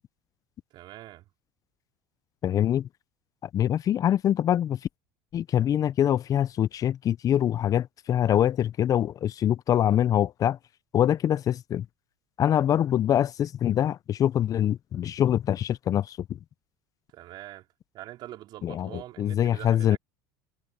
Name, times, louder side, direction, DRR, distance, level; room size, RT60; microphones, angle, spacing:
voice 1, 0.7-1.3 17.1-17.7 17.9-20.0, right 15 dB, 55° right, 4.7 m, -43 dB
voice 2, 2.4-2.9 3.4-4.8 5.3-10.6 10.9-11.9 12.4-16.2 18.6-18.9 19.2-20.0, left 10 dB, 40° left, 0.6 m, -24 dB
hypercardioid pair, 90°, 9 cm